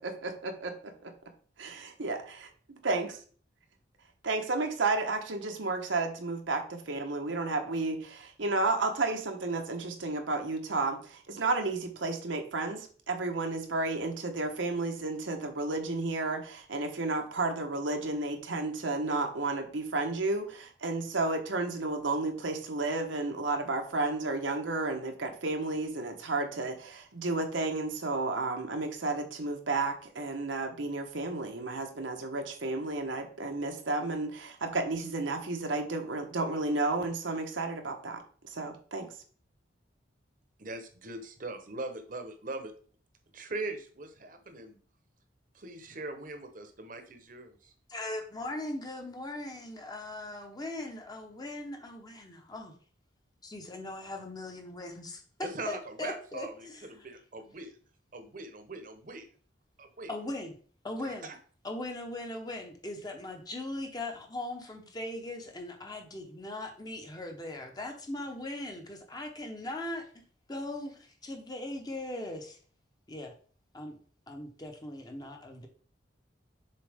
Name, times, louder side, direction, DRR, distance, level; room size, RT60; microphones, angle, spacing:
voice 1, 0.0-0.7 1.0-1.1 1.6-2.5 2.8-3.2 4.2-39.1, right 3 dB, 85° right, 4 dB, 1.1 m, -32 dB
voice 2, 40.6-42.7 43.3-44.8 45.5-47.7 55.4-57.7 58.1-59.3 59.8-60.1 61.0-61.4, right 2 dB, 45° right, 7 dB, 0.9 m, -41 dB
voice 3, 47.9-52.7 53.4-56.9 60.1-60.5 60.8-61.3 61.6-70.2 70.5-72.6 73.1-73.3 73.7-74.0 74.3-75.7, left 1 dB, 20° left, 3 dB, 0.9 m, -39 dB
6.8 x 4.3 x 3.5 m, 0.44 s
head